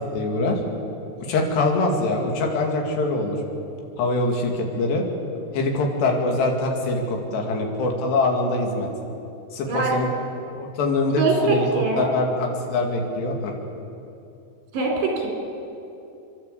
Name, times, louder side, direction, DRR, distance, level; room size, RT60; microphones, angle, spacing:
voice 1, 0.1-0.6 1.2-3.4 4.0-5.0 5.5-8.9 9.5-10.1 10.6-11.7 12.0-13.5, left 2 dB, 75° left, 1 dB, 4.5 m, -23 dB
voice 2, 11.2-12.1 14.7-15.3, right 3 dB, 80° right, 0 dB, 6.2 m, -22 dB
29.5 x 12.0 x 8.3 m, 2.8 s
omnidirectional pair, 4.9 m